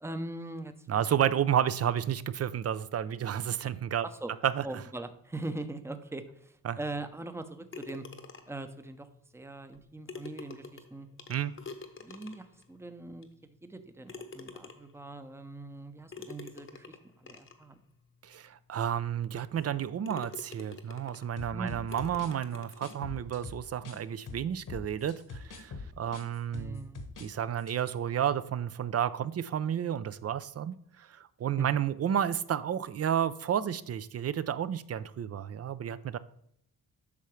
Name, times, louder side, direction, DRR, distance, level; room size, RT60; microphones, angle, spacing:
voice 1, 0.0-1.0 1.3-1.4 4.0-4.3 4.6-8.0 8.5-9.1 9.3-11.1 12.0-17.8 21.5-21.8 26.5-27.0 31.6-31.7, right 2 dB, 5° right, 9 dB, 0.6 m, -41 dB
voice 2, 0.9-4.0 4.4-4.6 6.6-6.8 11.3-11.5 18.2-26.8 27.2-31.1 31.4-36.2, right 9 dB, 45° right, 15 dB, 0.4 m, -31 dB
sound 1, 7.7-8.7 9.7-9.8 10.1-12.6 13.2-13.3 14.1-15.0 16.1-17.6 18.3-18.4 18.9-19.0 19.6-19.8 20.0-21.4 21.9-23.0, left 4 dB, 35° left, 0.9 m, -46 dB
sound 2, 21.4-24.0 24.3-27.3 27.6-27.8, left 3 dB, 60° left, 1.2 m, -43 dB
8.4 x 5.6 x 3.2 m, 0.71 s
cardioid pair, 90°, 36 cm